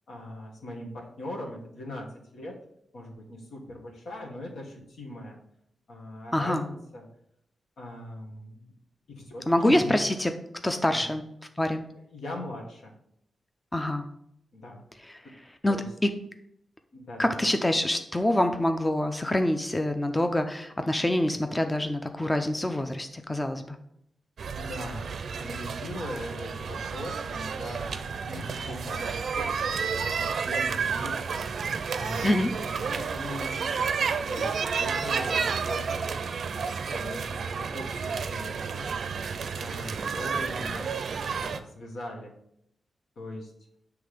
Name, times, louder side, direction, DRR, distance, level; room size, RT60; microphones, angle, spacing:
voice 1, 0.1-2.6 2.9-5.4 5.9-7.1 7.8-8.7 9.1-9.9 10.8-11.0 12.1-12.9 14.5-14.8 15.7-15.9 16.9-17.5 24.6-29.8 30.1-33.5 34.1-36.2 36.9-38.9 39.5-41.0 41.4-42.3 43.2-43.5, left 1 dB, 80° left, -1 dB, 1.6 m, -40 dB
voice 2, 6.3-6.7 9.5-10.3 10.6-11.2 11.6-11.8 13.7-14.0 15.1-15.2 15.6-16.1 17.2-23.8 32.2-32.5, left 1 dB, 15° left, 7 dB, 0.5 m, -26 dB
sound 1, 24.4-41.6, right 5 dB, 65° right, 0.4 m, -31 dB
7.4 x 3.4 x 5.0 m, 0.73 s
cardioid pair, 100°, 0 cm